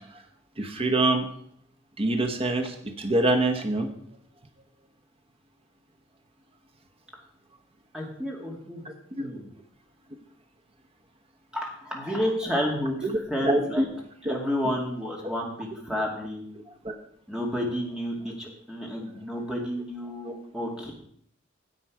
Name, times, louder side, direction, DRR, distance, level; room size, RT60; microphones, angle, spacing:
voice 1, 0.6-1.3 2.0-3.9 9.2-9.3 13.0-13.8 14.2-14.4 15.2-15.3 15.9-16.0 16.8-16.9 20.2-20.3, right 2 dB, 30° right, 5 dB, 1.0 m, -25 dB
voice 2, 7.9-8.8 9.2-9.4 11.5-13.0 13.3-13.9 14.3-16.4 17.3-20.9, equal, 5° right, -1 dB, 2.1 m, -30 dB
10.0 x 7.7 x 4.7 m, 0.66 s
head